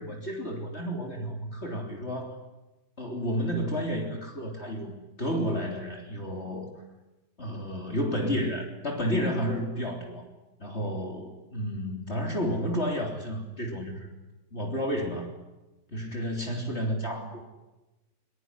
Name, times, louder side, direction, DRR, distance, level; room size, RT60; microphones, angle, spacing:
voice 1, 0.0-2.4 3.0-6.7 7.4-10.3 10.6-14.1 14.5-15.3 15.9-17.4, equal, 35° left, 2 dB, 3.8 m, -31 dB
23.5 x 22.0 x 9.8 m, 1.0 s
omnidirectional pair, 1.9 m